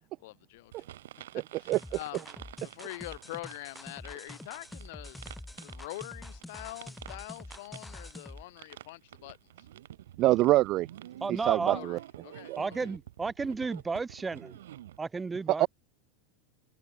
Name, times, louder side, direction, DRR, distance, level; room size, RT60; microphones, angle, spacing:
voice 1, 0.2-0.8 1.6-2.2 2.6-5.2 5.6-9.7 11.6-12.9, left 20 dB, 65° left, 1.0 m, -44 dB
sound 1, 0.7-15.0, right 13 dB, 85° right, 4.2 m, -50 dB
sound 2, 1.7-8.4, left 1 dB, 5° left, 5.0 m, -46 dB
voice 2, 10.2-10.9 11.5-12.0 12.5-12.6 15.6-15.7, right 17 dB, 40° right, 0.5 m, -24 dB
voice 3, 11.2-11.8 12.6-14.6 15.0-15.7, right 4 dB, 15° right, 1.0 m, -33 dB
supercardioid pair, 135°, 0 cm